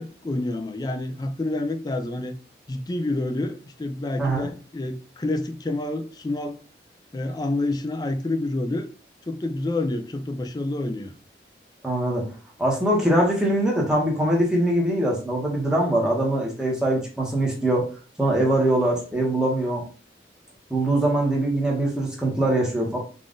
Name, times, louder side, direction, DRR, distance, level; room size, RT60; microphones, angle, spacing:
voice 1, 0.0-2.4 2.7-6.6 7.1-8.9 9.3-11.1, left 2 dB, 20° left, 0.3 m, -28 dB
voice 2, 11.8-12.2 12.6-17.9 18.2-19.8 20.7-23.0, right 1 dB, 5° right, 1.0 m, -22 dB
3.8 x 2.4 x 3.7 m
head